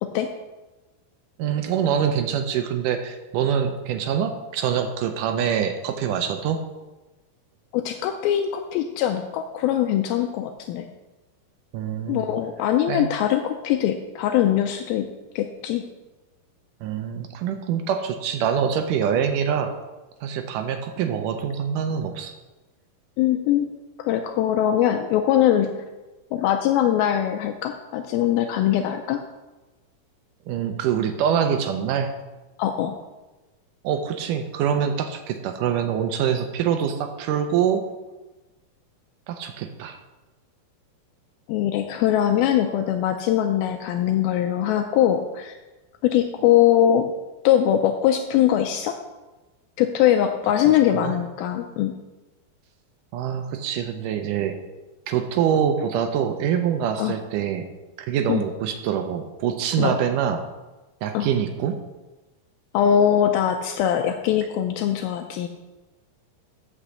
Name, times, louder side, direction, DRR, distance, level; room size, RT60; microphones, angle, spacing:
voice 1, 1.4-6.6 11.7-12.3 12.9-13.1 16.8-19.7 20.2-22.3 30.5-32.1 33.8-37.9 39.3-40.0 50.9-51.1 53.1-54.6 55.1-57.6 58.0-60.4 61.0-61.8, right 8 dB, 80° right, 6 dB, 1.9 m, -25 dB
voice 2, 7.7-10.9 12.1-15.1 15.4-15.8 23.2-23.7 24.0-25.7 26.3-29.2 32.6-33.0 41.5-45.5 46.0-47.1 47.4-49.0 49.8-51.9 57.0-57.1 58.3-58.4 59.8-60.0 61.1-61.3 62.7-65.5, left 10 dB, 80° left, 6 dB, 2.3 m, -22 dB
8.3 x 6.2 x 6.9 m, 1.1 s
omnidirectional pair, 4.4 m